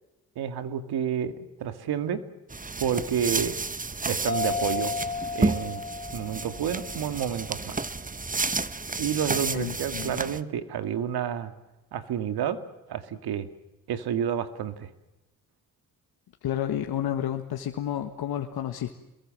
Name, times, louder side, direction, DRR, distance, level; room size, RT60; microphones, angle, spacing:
voice 1, 0.4-2.2 2.8-3.6 4.0-5.0 5.3-5.8 6.1-7.8 9.0-11.5 11.9-12.6 12.9-13.5 13.9-14.9, right 9 dB, 80° right, 10 dB, 2.2 m, -29 dB
sound 1, 2.5-10.4, right 3 dB, 20° right, 1.2 m, -31 dB
sound 2, 4.3-7.6, left 4 dB, 40° left, 2.7 m, -33 dB
voice 2, 9.5-10.2 16.4-19.0, left 10 dB, 75° left, 5 dB, 1.8 m, -31 dB
28.5 x 22.0 x 7.7 m, 0.97 s
supercardioid pair, 60°, 38 cm